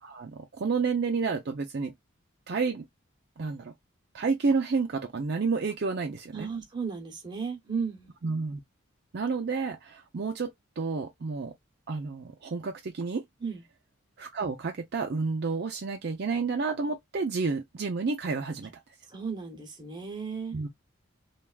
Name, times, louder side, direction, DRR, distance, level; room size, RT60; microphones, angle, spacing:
voice 1, 0.0-1.9 2.5-2.9 3.4-3.7 4.1-6.5 8.2-8.6 9.1-11.5 11.9-13.2 14.2-18.8 20.5-20.7, right 4 dB, 55° right, 0.5 m, -30 dB
voice 2, 6.3-8.1 13.4-13.6 19.1-20.6, right 5 dB, 20° right, 1.0 m, -35 dB
3.4 x 2.3 x 2.3 m
head